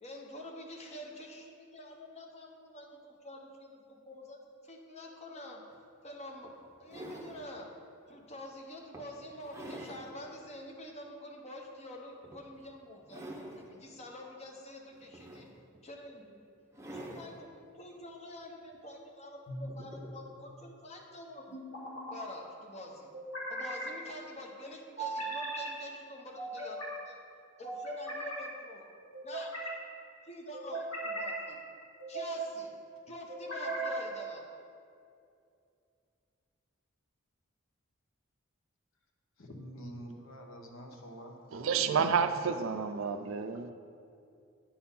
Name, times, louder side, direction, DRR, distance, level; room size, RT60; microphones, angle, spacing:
voice 1, 0.0-4.4 4.6-5.6 6.0-6.5 6.8-7.7 8.1-15.5 15.8-16.4 16.9-17.5 17.7-21.6 22.1-23.1 23.5-27.2 27.6-28.8 29.2-29.5 30.2-31.6 32.1-32.7 33.1-34.5, left 1 dB, 30° left, 1 dB, 0.9 m, -47 dB
sound 1, 5.7-5.8 6.4-7.5 8.1-8.3 8.9-10.1 10.6-10.7 12.2-12.6 13.0-13.7 14.9-15.8 16.7-17.4 18.7-18.8, right 1 dB, 15° right, 0.7 m, -46 dB
sound 2, 19.5-20.1 21.5-22.3 23.1-23.9 25.0-25.7 26.3-27.0 27.6-28.5 29.1-29.8 30.5-31.4 32.0-32.5 33.3-34.1, right 2 dB, 85° left, 1.7 m, -38 dB
voice 2, 39.4-41.9, equal, 70° left, 2 dB, 1.0 m, -47 dB
voice 3, 41.5-43.7, right 6 dB, 70° right, 10 dB, 0.4 m, -30 dB
9.9 x 4.3 x 5.5 m, 2.5 s
head